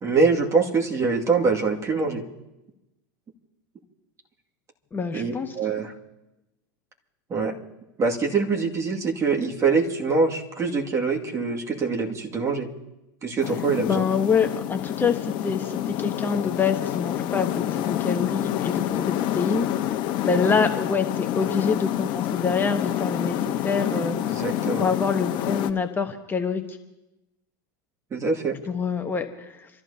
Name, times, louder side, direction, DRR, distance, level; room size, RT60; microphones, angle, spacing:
voice 1, 0.0-2.2 5.1-5.9 7.3-7.5 8.0-12.7 13.2-14.1 24.3-24.9 28.1-28.6, right 4 dB, 25° right, 0 dB, 2.3 m, -24 dB
voice 2, 4.9-5.5 13.9-19.9 20.2-24.2 24.8-26.8 28.7-29.7, left 5 dB, 20° left, 5 dB, 1.1 m, -26 dB
sound 1, 13.4-25.7, left 12 dB, 45° left, 1.2 m, -28 dB
27.5 x 14.0 x 2.9 m, 0.95 s
hypercardioid pair, 115°, 11 cm